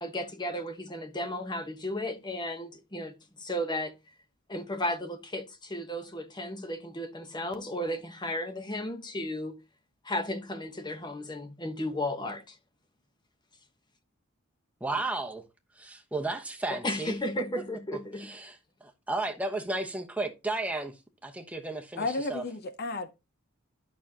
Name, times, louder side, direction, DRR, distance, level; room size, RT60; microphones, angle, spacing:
voice 1, 0.0-3.9 4.5-9.6 10.0-12.6 16.7-18.3, left 1 dB, 20° left, 1.0 m, -34 dB
voice 2, 14.8-15.4 15.8-17.1 18.2-21.0 21.2-22.4, right 2 dB, 5° right, 0.9 m, -34 dB
voice 3, 22.0-23.2, left 2 dB, 50° left, 0.7 m, -33 dB
11.0 x 6.2 x 2.8 m
head